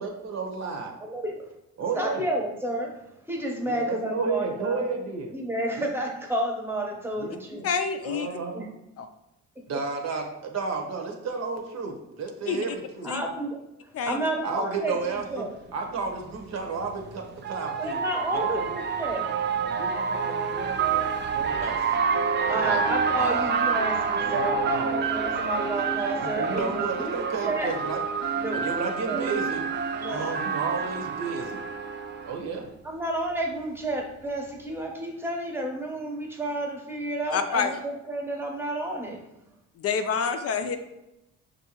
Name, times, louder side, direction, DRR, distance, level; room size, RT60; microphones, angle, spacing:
voice 1, 0.0-0.9 1.8-2.2 3.7-5.3 5.8-5.9 7.2-7.3 8.0-8.6 9.7-13.1 14.4-15.4 15.7-18.0 18.3-18.7 19.6-21.9 22.4-22.8 23.1-23.5 24.2-25.0 26.2-28.0 28.5-29.6 30.1-31.6 32.2-32.7, right 4 dB, 60° right, 3 dB, 0.9 m, -32 dB
voice 2, 1.0-1.5 1.9-2.9 3.3-4.9 5.3-7.7 8.5-8.6 9.7-9.8 13.0-15.5 17.8-19.3 22.5-24.6 24.9-27.7 28.3-28.6 29.0-29.3 30.0-30.3 32.8-39.2, right 1 dB, 10° right, 1 dB, 0.8 m, -31 dB
voice 3, 7.6-8.3 12.5-12.6 13.1-13.2 14.0-14.2 37.3-37.7 39.8-40.8, left 6 dB, 55° left, 8 dB, 0.4 m, -27 dB
sound 1, 15.2-15.3 16.8-32.4, right 5 dB, 35° right, 0.4 m, -28 dB
5.3 x 2.6 x 2.9 m, 0.91 s
cardioid pair, 90°, 30 cm